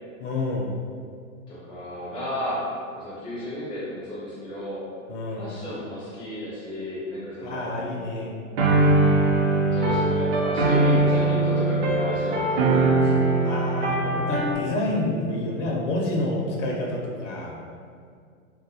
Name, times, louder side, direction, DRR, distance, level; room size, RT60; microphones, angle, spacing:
voice 1, 0.2-0.7 5.1-5.5 7.4-8.3 13.5-17.6, left 2 dB, 65° left, -2 dB, 0.5 m, -28 dB
voice 2, 1.5-4.8 5.3-7.9 9.7-13.4, left 1 dB, 15° left, -8 dB, 0.3 m, -33 dB
sound 1, 8.6-14.5, right 2 dB, 55° right, 0.5 m, -21 dB
2.2 x 2.1 x 2.7 m, 2.2 s
hypercardioid pair, 125°, 41 cm